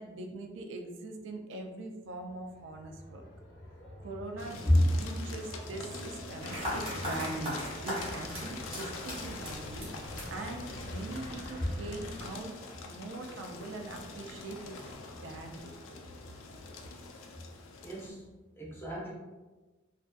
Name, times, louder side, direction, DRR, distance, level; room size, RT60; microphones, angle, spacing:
voice 1, 0.0-3.2 4.0-7.6 7.8-12.5 12.8-14.8 15.2-16.0, right 2 dB, 70° right, 4 dB, 0.3 m, -42 dB
sound 1, 2.1-12.3, left 1 dB, 60° left, 0.7 m, -47 dB
sound 2, 4.4-18.1, left 3 dB, 85° left, 0.3 m, -45 dB
sound 3, 6.4-14.9, equal, 30° right, 0.9 m, -42 dB
voice 2, 17.8-18.2 18.6-19.1, left 1 dB, 10° left, -5 dB, 0.5 m, -28 dB
2.4 x 2.4 x 2.2 m, 1.2 s
head